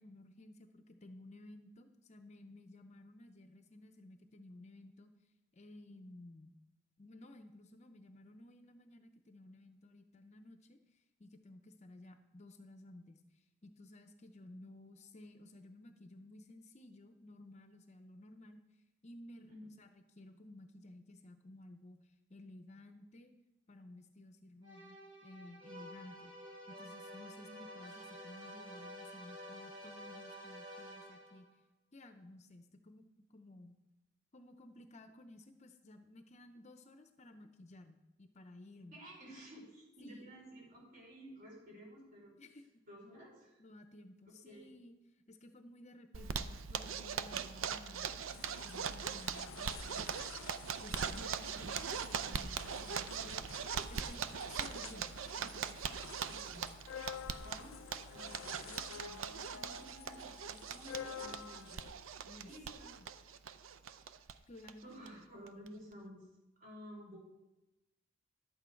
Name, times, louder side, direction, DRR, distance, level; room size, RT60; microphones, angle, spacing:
voice 1, 0.0-5.1 5.5-6.6 7.0-18.6 19.0-22.0 22.3-23.3 23.7-26.3 26.7-31.5 31.9-33.0 33.3-33.8 34.3-39.0 40.0-40.3 42.4-42.8 43.6-45.0 45.3-48.2 48.5-50.5 50.8-53.5 53.9-55.8 62.3-62.5 64.5-64.9, left 1 dB, 35° left, 7 dB, 0.6 m, -55 dB
sound 1, 24.6-31.5, equal, 25° right, 2.0 m, -50 dB
voice 2, 38.9-42.3 42.9-43.6 44.4-44.7 51.1-51.5 56.2-56.7 57.4-61.9 62.4-62.9 64.0-64.4 64.8-66.3 66.6-67.2, equal, 45° right, -3 dB, 4.3 m, -53 dB
Zipper (clothing), 46.1-64.3 64.6-64.7 65.1-65.2 65.5-65.9, right 7 dB, 80° right, 0.5 m, -41 dB
sound 2, 48.3-61.9, left 8 dB, 75° left, 0.4 m, -51 dB
11.5 x 8.5 x 4.5 m, 1.0 s
head